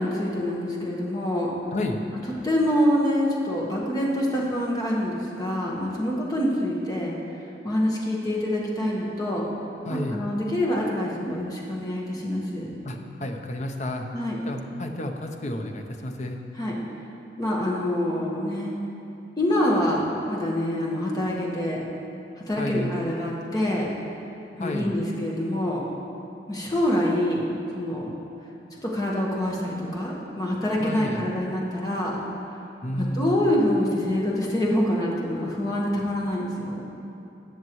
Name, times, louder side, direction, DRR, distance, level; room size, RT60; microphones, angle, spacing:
voice 1, 0.0-1.5 2.4-7.2 7.6-9.5 9.9-12.7 14.1-14.4 16.6-16.7 17.4-18.7 19.4-21.8 22.5-23.9 24.6-25.9 26.5-27.5 27.7-28.1 28.8-32.2 33.0-36.8, left 1 dB, 20° left, -3 dB, 1.4 m, -26 dB
voice 2, 1.7-2.0 9.8-10.2 12.8-14.1 14.4-16.4 22.6-22.9 24.6-25.0 30.8-31.2 32.8-33.6, left 1 dB, 40° left, 3 dB, 0.7 m, -31 dB
18.5 x 6.7 x 3.1 m, 2.8 s
head